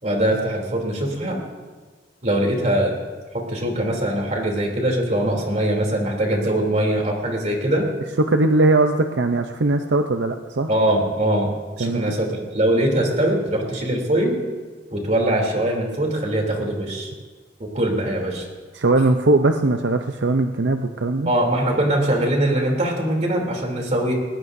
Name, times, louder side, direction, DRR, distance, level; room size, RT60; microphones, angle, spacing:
voice 1, 0.0-1.4 2.2-2.9 3.3-7.9 10.7-11.5 11.8-12.3 12.5-14.4 14.9-17.1 17.6-18.5 21.3-24.1, right 1 dB, 40° right, 0 dB, 3.2 m, -22 dB
voice 2, 8.2-10.7 11.8-12.1 18.7-21.3, right 2 dB, 80° right, 6 dB, 0.7 m, -20 dB
20.5 x 19.0 x 2.7 m, 1.4 s
head